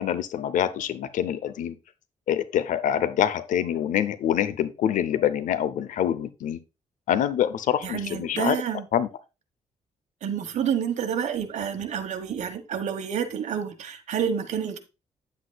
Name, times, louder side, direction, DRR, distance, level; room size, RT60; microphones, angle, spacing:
voice 1, 0.0-1.8 2.3-6.6 7.1-8.6 8.9-9.1, left 10 dB, 90° left, 0.7 m, -25 dB
voice 2, 7.8-8.9 10.2-14.8, right 8 dB, 65° right, 1.4 m, -29 dB
9.6 x 8.2 x 2.3 m
cardioid pair, 140°, 13 cm